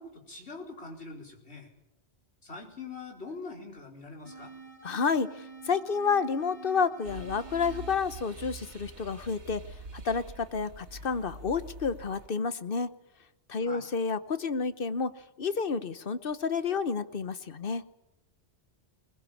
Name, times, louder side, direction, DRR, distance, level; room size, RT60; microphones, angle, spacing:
voice 1, 0.0-1.7 2.4-4.5 13.6-13.8, left 3 dB, 70° left, 0 dB, 4.8 m, -43 dB
sound 1, 4.3-9.3, right 4 dB, 30° right, 3.8 m, -49 dB
voice 2, 4.8-5.3 5.7-9.6 9.9-12.9 13.5-15.1 15.4-17.8, left 5 dB, 55° left, 13 dB, 1.2 m, -30 dB
sound 2, 7.0-12.3, right 2 dB, 85° right, 2.1 m, -45 dB
21.5 x 20.0 x 8.6 m, 0.90 s
omnidirectional pair, 1.1 m